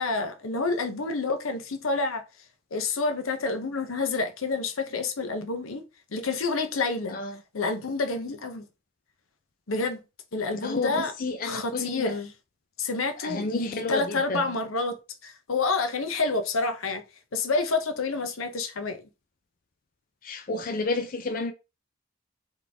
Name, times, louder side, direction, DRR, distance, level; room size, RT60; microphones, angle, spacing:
voice 1, 0.0-2.2 2.7-5.8 6.1-7.2 7.5-8.7 9.7-10.0 10.3-11.1 11.4-12.3 12.8-15.0 15.2-17.0 17.3-19.1, left 3 dB, 85° left, 0.8 m, -28 dB
voice 2, 10.6-12.1 13.2-14.4 20.2-21.5, left 2 dB, 45° left, 0.5 m, -31 dB
4.0 x 3.2 x 3.4 m
head